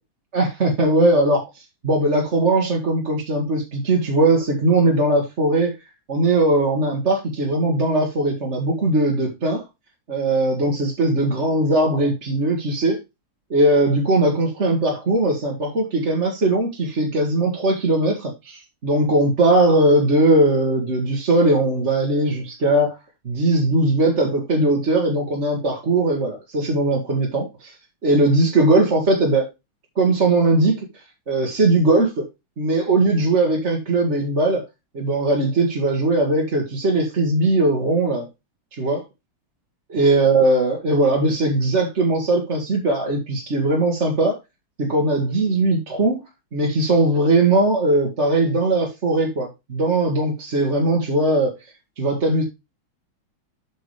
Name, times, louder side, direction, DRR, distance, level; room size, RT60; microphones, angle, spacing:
voice 1, 0.3-5.7 6.1-9.6 10.1-13.0 13.5-22.9 23.3-27.7 28.0-29.5 30.0-30.7 31.3-32.3 32.6-34.6 34.9-38.3 38.8-39.0 39.9-44.4 44.8-46.2 46.5-51.5 52.0-52.4, right 2 dB, 35° right, 0 dB, 2.0 m, -19 dB
7.7 x 6.9 x 3.3 m, 0.23 s
omnidirectional pair, 2.3 m